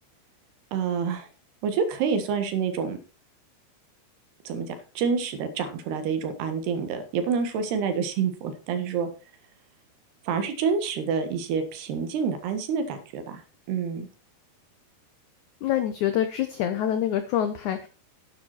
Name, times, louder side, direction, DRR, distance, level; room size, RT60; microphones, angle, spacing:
voice 1, 0.7-1.3 1.6-3.0 4.5-9.1 10.3-13.4 13.7-14.1, right 6 dB, 80° right, 8 dB, 3.6 m, -27 dB
voice 2, 15.6-17.9, left 10 dB, 80° left, 9 dB, 1.7 m, -26 dB
10.5 x 9.7 x 4.4 m, 0.33 s
omnidirectional pair, 4.7 m